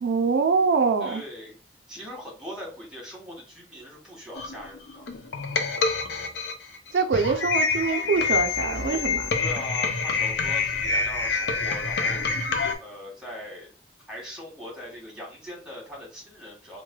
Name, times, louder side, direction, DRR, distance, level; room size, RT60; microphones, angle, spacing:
voice 1, 0.0-1.2 6.9-9.3, right 5 dB, 80° right, 0.3 m, -24 dB
voice 2, 1.0-1.6 1.9-5.1 9.4-12.2 12.8-13.7 14.1-16.8, equal, 5° right, 1.1 m, -40 dB
sound 1, 4.3-12.7, left 4 dB, 80° left, 0.4 m, -26 dB
3.1 x 2.1 x 2.2 m
head